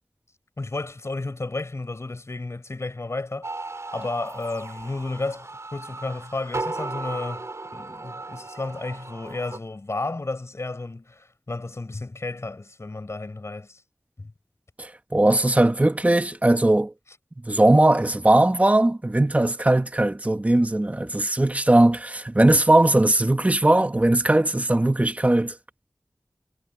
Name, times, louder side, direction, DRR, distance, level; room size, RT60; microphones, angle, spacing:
voice 1, 0.6-3.5 3.9-7.5 7.7-13.8 14.2-14.3, left 2 dB, 60° left, 4.5 m, -32 dB
sound 1, 3.4-9.6, right 2 dB, 65° right, 3.6 m, -36 dB
voice 2, 14.8-16.9 17.4-25.5, right 1 dB, 25° right, 1.4 m, -19 dB
wide cardioid pair, 60°, 5 cm